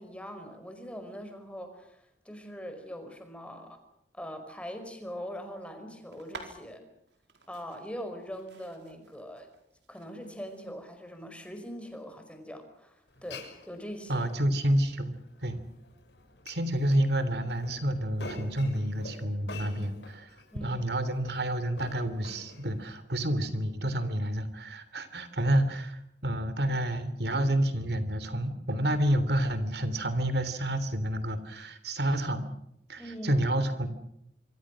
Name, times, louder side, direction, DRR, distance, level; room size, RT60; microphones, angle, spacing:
voice 1, 0.0-3.8 4.1-6.9 7.5-9.5 9.9-14.2 20.5-20.8 33.0-33.4, equal, 5° left, 6 dB, 5.1 m, -42 dB
sound 1, 6.1-13.8, right 3 dB, 85° right, 4.7 m, -53 dB
Glass, 13.1-23.0, left 2 dB, 80° left, 6.3 m, -48 dB
voice 2, 14.1-15.2 15.4-15.6 16.4-20.3 20.6-32.5 32.9-33.9, right 1 dB, 65° right, 12 dB, 3.3 m, -29 dB
26.5 x 24.5 x 6.4 m, 0.74 s
head